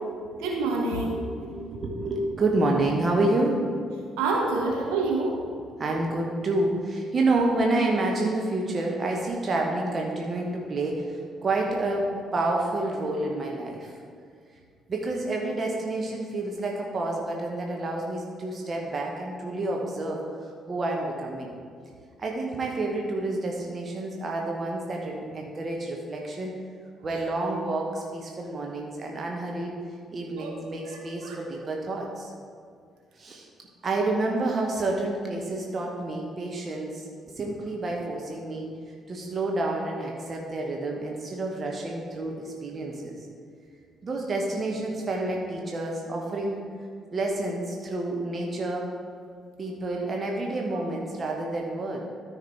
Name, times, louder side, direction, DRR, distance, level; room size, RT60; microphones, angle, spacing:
voice 1, 0.4-1.3 4.2-5.3 30.4-30.5 30.9-31.4, right 3 dB, 70° right, -2 dB, 1.3 m, -27 dB
voice 2, 1.2-3.6 5.8-13.9 14.9-21.5 22.2-26.5 27.0-29.7 30.1-32.3 33.2-33.5 33.8-38.7 39.1-43.1 44.0-46.6 47.1-48.9 49.6-52.0, right 2 dB, 40° right, 0 dB, 1.0 m, -29 dB
13.0 x 5.0 x 3.3 m, 2.2 s
figure-of-eight pair, 45°, 0 cm